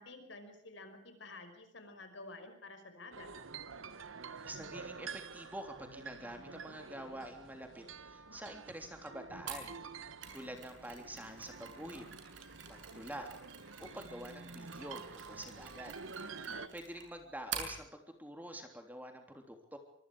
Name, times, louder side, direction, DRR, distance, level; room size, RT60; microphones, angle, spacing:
voice 1, 0.0-3.3 16.4-16.8, left 2 dB, 70° left, 8 dB, 5.3 m, -51 dB
sound 1, 3.1-16.7, right 5 dB, 85° right, 1.3 m, -49 dB
voice 2, 4.4-9.7 10.3-12.0 12.7-13.3 13.8-15.9 16.7-19.8, right 1 dB, 10° right, 4 dB, 3.3 m, -47 dB
Mechanisms, 9.5-17.8, right 7 dB, 70° right, 7.0 m, -48 dB
25.0 x 25.0 x 5.0 m, 0.73 s
head